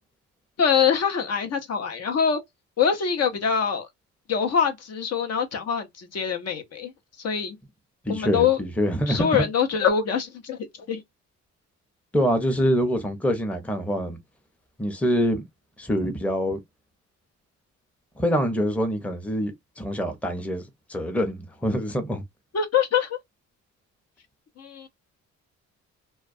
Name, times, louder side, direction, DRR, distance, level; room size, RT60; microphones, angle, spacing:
voice 1, 0.6-2.4 2.8-3.9 4.3-6.9 7.2-7.6 8.1-8.6 9.1-10.6 10.9-11.0 22.5-23.2 24.6-24.9, left 7 dB, 55° left, 0.7 m, -24 dB
voice 2, 8.0-9.5 12.1-14.2 14.8-15.4 15.8-16.6 18.2-19.5 19.8-20.6 20.9-22.2, equal, 5° left, 0.6 m, -25 dB
2.2 x 2.2 x 2.5 m
cardioid pair, 90°, 30 cm